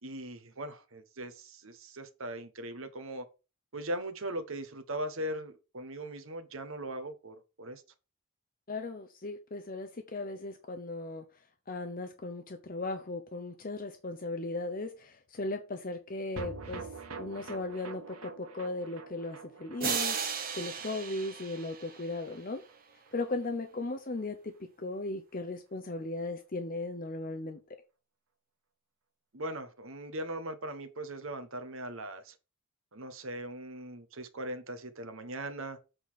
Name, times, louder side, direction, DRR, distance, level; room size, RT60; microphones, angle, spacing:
voice 1, 0.0-3.3 3.7-7.8 29.3-32.3 32.9-35.8, right 1 dB, 65° right, 1.3 m, -39 dB
voice 2, 8.7-11.2 11.7-16.9 17.2-22.6 23.1-27.6, left 2 dB, 40° left, 0.7 m, -37 dB
sound 1, 16.4-22.8 23.1-23.2 23.4-23.5, right 4 dB, 80° right, 1.4 m, -46 dB
sound 2, 19.8-22.5, right 6 dB, 40° right, 1.3 m, -35 dB
7.9 x 4.2 x 6.3 m
head